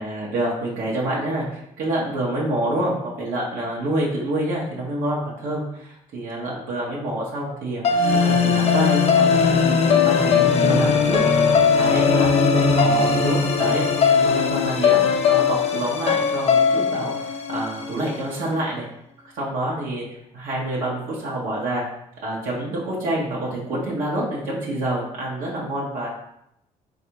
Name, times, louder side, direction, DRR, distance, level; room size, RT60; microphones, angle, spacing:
voice 1, 0.0-9.6 9.9-11.2 11.7-18.8 19.3-20.0 20.3-21.8 22.2-26.1, right 1 dB, 85° right, -5 dB, 0.9 m, -27 dB
sound 1, 7.8-18.1, left 5 dB, 50° left, 0.4 m, -19 dB
3.3 x 2.5 x 2.9 m, 0.77 s
cardioid pair, 90°, 14 cm